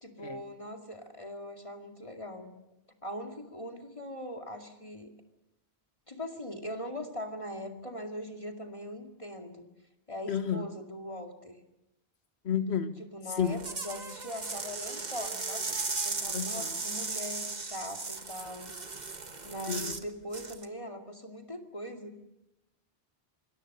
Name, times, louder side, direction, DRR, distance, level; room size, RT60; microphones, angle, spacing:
voice 1, 0.0-2.5 3.0-5.1 6.1-9.7 10.1-11.6 13.0-18.7 19.4-22.2, equal, 30° left, 2.4 m, -41 dB
voice 2, 10.3-10.6 12.4-13.0 13.4-13.6 16.3-16.7 19.7-20.0, left 8 dB, 80° left, 1.5 m, -31 dB
sound 1, 13.4-20.0 20.3-20.6, right 3 dB, 45° right, 1.5 m, -36 dB
26.5 x 22.0 x 6.7 m
omnidirectional pair, 1.1 m